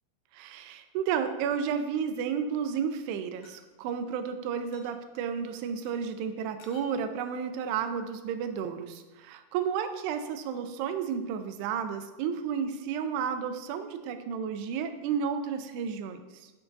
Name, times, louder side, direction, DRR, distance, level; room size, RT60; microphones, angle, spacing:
voice 1, 0.3-16.5, right 7 dB, 90° right, 8 dB, 2.6 m, -32 dB
sound 1, 1.4-2.1 3.4-3.6 4.7-5.0 5.8-5.9 6.6-7.0, left 6 dB, 75° left, 2.3 m, -56 dB
10.5 x 5.9 x 2.6 m, 1.2 s
omnidirectional pair, 4.7 m